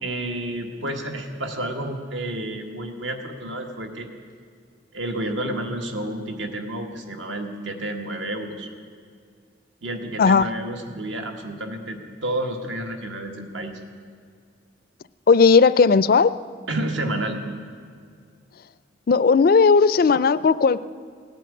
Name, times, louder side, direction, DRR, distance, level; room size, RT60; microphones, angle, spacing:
voice 1, 0.0-4.1 4.9-8.7 9.8-13.7 16.7-17.4, right 1 dB, 75° right, 4 dB, 1.6 m, -30 dB
voice 2, 15.3-16.4 19.1-20.8, left 5 dB, 50° left, 17 dB, 0.4 m, -16 dB
18.0 x 9.1 x 8.3 m, 2.1 s
head